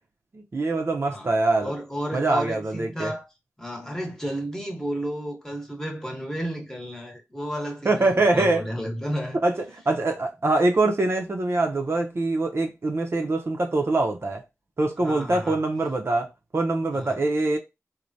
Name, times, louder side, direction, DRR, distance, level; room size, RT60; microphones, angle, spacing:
voice 1, 0.3-1.7 2.1-3.1 7.8-8.6 9.4-14.4 14.8-16.3 16.5-17.6, right 2 dB, 50° right, 0.6 m, -24 dB
voice 2, 1.6-3.3 3.6-9.4 15.0-15.6 16.9-17.2, equal, 10° left, 1.0 m, -32 dB
3.2 x 2.1 x 2.6 m
cardioid pair, 55°, 5 cm